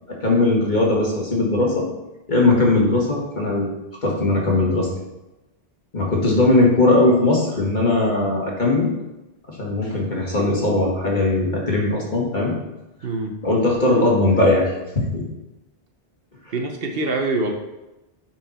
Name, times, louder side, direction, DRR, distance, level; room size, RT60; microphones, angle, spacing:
voice 1, 0.2-1.9 2.3-3.7 4.0-4.9 5.9-8.9 9.6-12.5 13.4-15.2, left 2 dB, 50° left, -2 dB, 1.9 m, -19 dB
voice 2, 13.0-13.4 16.5-17.5, right 2 dB, 65° right, 4 dB, 1.1 m, -24 dB
9.0 x 4.5 x 4.2 m, 0.98 s
omnidirectional pair, 1.0 m